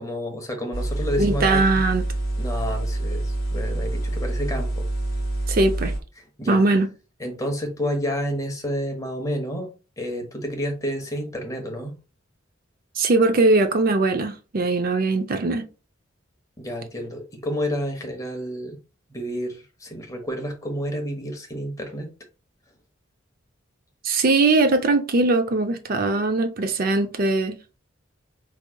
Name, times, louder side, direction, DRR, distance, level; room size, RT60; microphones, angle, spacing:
voice 1, 0.0-1.6 2.4-4.9 6.4-6.6 7.2-9.7 10.0-12.0 16.6-18.8 19.1-22.1, equal, 15° left, 1.0 m, -30 dB
sound 1, 0.7-6.0, right 1 dB, 50° left, 1.2 m, -26 dB
voice 2, 1.2-2.0 5.5-5.9 6.5-6.9 13.0-15.6 24.0-27.6, right 3 dB, 50° right, 0.5 m, -20 dB
4.6 x 3.1 x 2.2 m
head